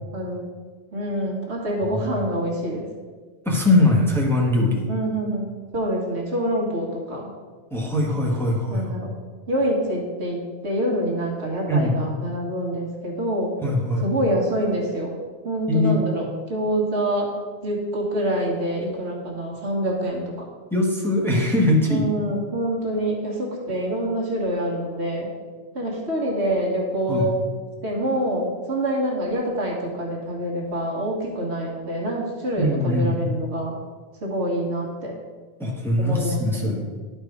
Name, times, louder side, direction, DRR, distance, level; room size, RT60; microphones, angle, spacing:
voice 1, 0.1-0.5 0.9-2.9 4.9-7.3 8.7-9.1 9.5-13.5 14.0-15.1 15.4-17.3 17.6-20.5 21.9-25.3 25.7-27.3 27.8-33.8 34.2-35.1 36.0-36.8, right 1 dB, 75° right, -2 dB, 1.8 m, -26 dB
voice 2, 3.4-4.9 7.7-8.9 11.7-11.9 13.6-14.1 15.7-16.0 20.7-22.0 27.1-27.3 32.6-33.2 35.6-36.8, left 1 dB, ahead, -2 dB, 1.2 m, -21 dB
10.5 x 4.5 x 4.9 m, 1.5 s
omnidirectional pair, 1.1 m